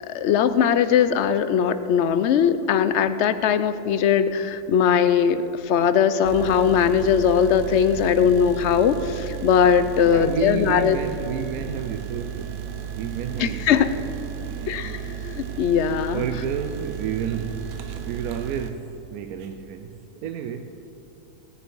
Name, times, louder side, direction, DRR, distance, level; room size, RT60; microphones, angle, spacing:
voice 1, 0.0-11.0 13.4-13.9 14.7-16.2, left 8 dB, 70° left, 12 dB, 0.7 m, -20 dB
sound 1, 6.2-18.7, right 9 dB, 55° right, 0.6 m, -34 dB
voice 2, 10.0-15.0 16.1-20.8, right 8 dB, 75° right, 7 dB, 1.0 m, -31 dB
17.0 x 9.6 x 4.7 m, 2.8 s
omnidirectional pair, 1.6 m